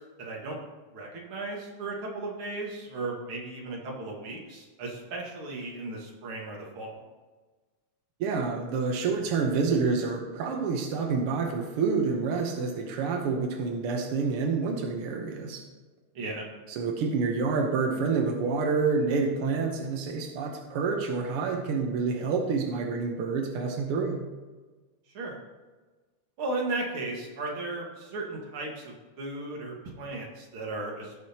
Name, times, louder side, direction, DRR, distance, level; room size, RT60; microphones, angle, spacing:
voice 1, 0.2-0.6 0.9-7.0 16.2-16.5 25.1-25.4 26.4-31.2, right 2 dB, 45° right, -1 dB, 2.1 m, -35 dB
voice 2, 8.2-15.6 16.7-24.2, right 4 dB, 80° right, 2 dB, 1.2 m, -28 dB
17.0 x 6.3 x 2.9 m, 1.3 s
omnidirectional pair, 3.8 m